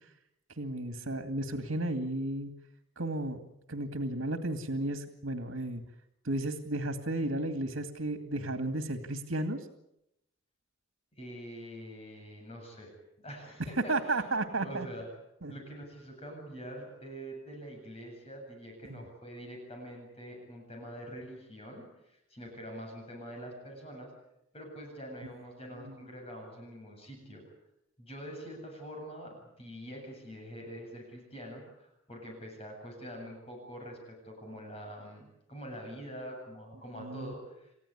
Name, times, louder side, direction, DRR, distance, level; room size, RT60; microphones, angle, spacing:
voice 1, 0.6-2.5 3.0-3.4 3.7-5.8 6.2-9.7 13.9-14.9 15.4-15.5 18.9-19.0 25.8-25.9 37.0-37.3, right 2 dB, 85° right, 7 dB, 2.2 m, -33 dB
voice 2, 11.1-12.9 13.2-14.2 14.6-15.1 15.5-24.1 24.5-27.4 28.0-37.7, equal, 30° left, 1 dB, 7.9 m, -45 dB
29.5 x 15.5 x 9.8 m, 0.83 s
head